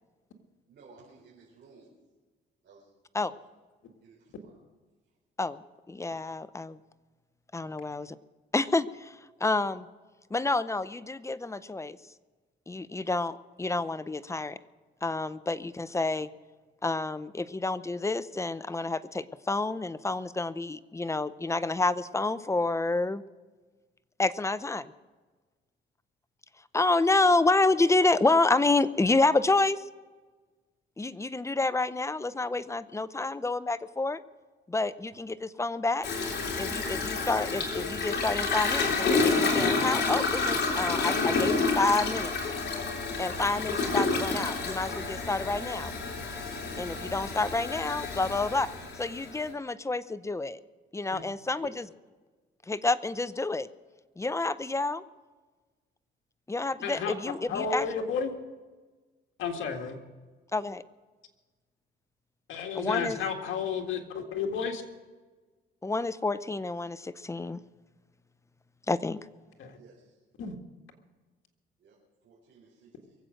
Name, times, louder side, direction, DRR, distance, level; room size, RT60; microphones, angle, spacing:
voice 1, 0.7-1.9 2.6-2.9 3.4-3.5 4.0-4.6 69.7-70.1 71.8-72.0 72.2-73.2, right 4 dB, 60° right, -5 dB, 4.3 m, -56 dB
voice 2, 5.9-6.8 7.5-8.2 8.5-9.9 10.3-12.0 12.7-14.6 15.0-16.3 16.8-23.2 24.2-24.9 26.7-29.8 31.0-34.2 34.7-36.1 36.6-42.3 43.2-45.9 46.8-48.7 49.0-50.6 50.9-51.9 52.7-53.7 54.2-55.0 56.5-57.9 60.5-60.8 62.7-63.2 65.8-67.6 68.9-69.2, left 3 dB, 15° left, 15 dB, 0.6 m, -28 dB
Toilet flush, 36.0-49.5, left 4 dB, 55° left, 3.3 m, -29 dB
voice 3, 56.8-57.1 57.5-58.3 59.4-60.0 62.5-64.8 69.6-69.7 70.4-70.5, left 6 dB, 75° left, 3 dB, 1.9 m, -32 dB
23.5 x 7.9 x 6.4 m, 1.3 s
cardioid pair, 90°, 20 cm